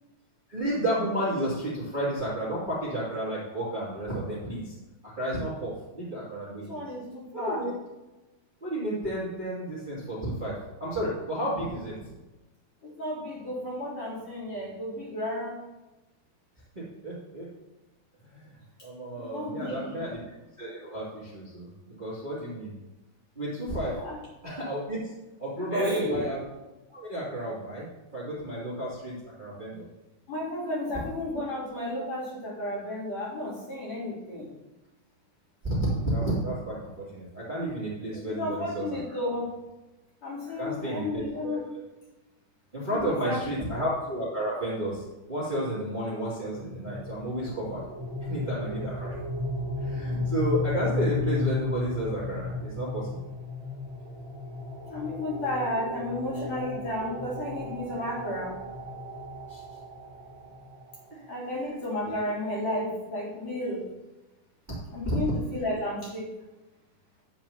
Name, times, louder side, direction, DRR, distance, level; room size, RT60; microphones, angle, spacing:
voice 1, 0.5-4.8 5.0-6.8 7.3-7.7 8.6-10.5 10.8-11.9 16.7-17.5 18.2-20.2 20.6-21.7 22.0-22.7 23.3-23.9 24.4-25.1 25.4-26.4 26.9-27.9 28.1-29.9 30.9-31.0 35.6-39.2 40.6-41.6 42.7-47.8 48.3-49.2 49.8-53.3 59.5-59.6 61.1-62.3 65.0-65.1, right 1 dB, 15° right, -9 dB, 2.1 m, -32 dB
voice 2, 6.7-7.7 12.8-15.6 19.2-20.0 23.9-24.2 25.7-26.2 30.3-34.5 38.3-39.5 40.2-41.6 42.9-43.4 54.9-58.6 61.3-63.9 64.9-66.3, left 1 dB, 45° left, -8 dB, 4.2 m, -32 dB
sound 1, 46.4-61.2, left 3 dB, 50° right, 2.4 m, -34 dB
10.5 x 8.5 x 2.9 m, 1.1 s
omnidirectional pair, 4.5 m